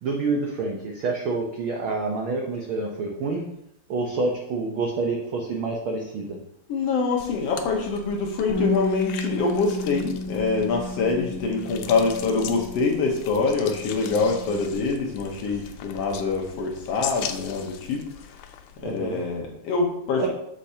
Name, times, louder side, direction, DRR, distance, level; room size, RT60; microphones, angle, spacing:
voice 1, 0.0-3.4 3.9-6.4 18.8-19.2 20.2-20.3, right 3 dB, 75° right, 1 dB, 1.2 m, -27 dB
voice 2, 6.7-18.1 18.8-20.3, left 4 dB, 65° left, 0 dB, 1.9 m, -25 dB
sound 1, 7.2-19.4, left 9 dB, 85° left, 2.1 m, -40 dB
Bass guitar, 8.5-14.7, left 1 dB, 40° left, 2.1 m, -33 dB
8.1 x 6.6 x 2.8 m, 0.78 s
omnidirectional pair, 3.4 m